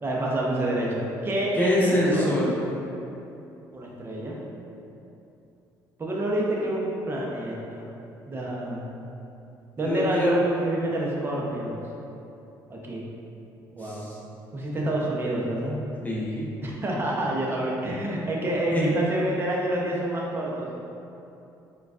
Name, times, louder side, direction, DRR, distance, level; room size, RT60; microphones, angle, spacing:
voice 1, 0.0-2.3 3.7-4.4 6.0-7.9 8.3-9.0 9.8-11.8 12.7-13.0 13.7-14.1 14.5-15.8 16.6-20.7, right 1 dB, 30° right, -3 dB, 0.7 m, -28 dB
voice 2, 1.5-2.5 9.8-10.3 13.8-14.2 16.0-16.5 18.7-18.9, left 1 dB, 20° left, -6 dB, 0.8 m, -25 dB
4.4 x 2.3 x 2.4 m, 2.8 s
supercardioid pair, 85°, 8 cm